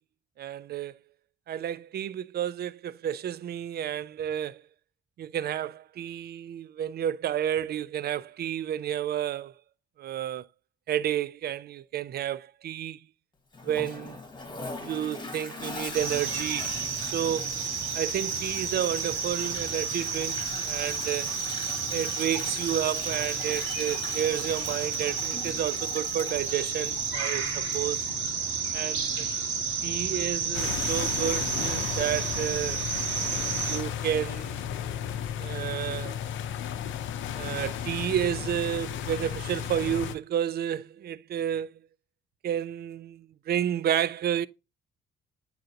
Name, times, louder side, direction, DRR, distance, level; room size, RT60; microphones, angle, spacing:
voice 1, 0.4-0.9 1.5-4.6 5.2-9.5 10.0-10.5 10.9-13.0 13.6-14.2 14.8-16.7 17.0-17.6 17.9-21.3 21.9-28.1 28.7-29.3 29.8-32.8 33.7-34.7 35.4-36.2 37.3-41.7 42.4-44.5, right 10 dB, 55° right, 0.4 m, -31 dB
Toilet flush, 13.5-28.2, left 3 dB, 25° left, 1.6 m, -41 dB
sound 1, 15.9-33.8, right 5 dB, 70° right, 2.0 m, -31 dB
sound 2, 30.5-40.2, left 9 dB, 75° left, 0.6 m, -34 dB
8.9 x 3.9 x 2.8 m
cardioid pair, 90°, 20 cm